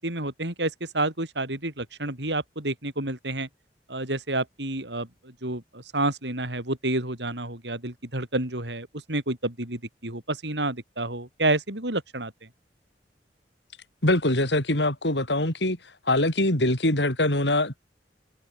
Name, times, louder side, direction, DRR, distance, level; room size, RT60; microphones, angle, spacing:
voice 1, 0.0-3.5 3.9-5.1 5.4-12.3, right 2 dB, 85° right, 6.7 m, -29 dB
voice 2, 14.0-15.8 16.1-17.8, left 1 dB, 90° left, 6.2 m, -23 dB
open air
head